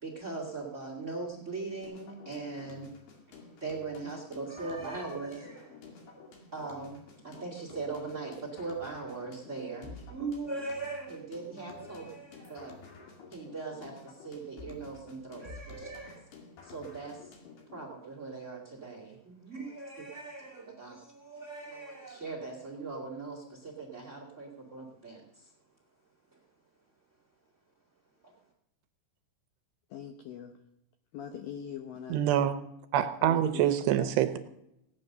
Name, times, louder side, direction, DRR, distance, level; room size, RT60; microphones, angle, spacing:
voice 1, 0.0-2.9 3.3-16.4 16.6-17.4 17.7-25.5 26.3-26.4 28.2-28.3, right 3 dB, 45° right, 1 dB, 0.9 m, -40 dB
sound 1, 1.8-17.8, left 4 dB, 60° left, 3.9 m, -51 dB
voice 2, 29.9-30.5 31.1-32.2 33.2-33.7 34.0-34.2, left 9 dB, 90° left, 7 dB, 2.0 m, -42 dB
voice 3, 32.1-32.5 32.9-34.4, right 11 dB, 80° right, 10 dB, 2.6 m, -26 dB
18.0 x 9.6 x 6.6 m, 0.85 s
omnidirectional pair, 5.3 m